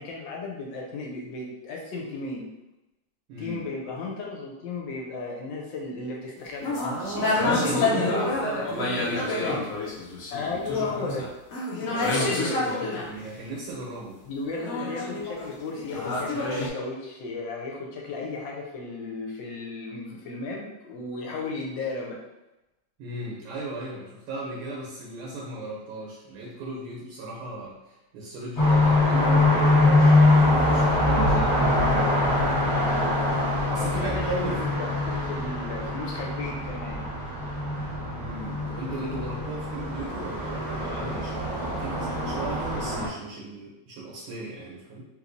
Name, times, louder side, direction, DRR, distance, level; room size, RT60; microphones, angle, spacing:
voice 1, 0.0-2.5 3.4-6.8 7.7-8.3 10.3-11.3 14.3-22.2 33.8-37.0, left 3 dB, 75° left, -1 dB, 1.2 m, -34 dB
voice 2, 3.3-3.7 6.8-9.6 12.0-14.2 23.0-30.2 30.4-32.7 33.7-34.6 38.2-45.1, right 2 dB, 90° right, -3 dB, 1.6 m, -36 dB
sound 1, 6.6-13.1 14.5-16.7, left 2 dB, 90° left, 0.7 m, -28 dB
sound 2, 28.6-43.1, left 2 dB, 25° left, 0.9 m, -23 dB
sound 3, 31.2-35.9, right 1 dB, 70° right, 1.2 m, -32 dB
3.3 x 3.0 x 2.5 m, 0.95 s
omnidirectional pair, 2.3 m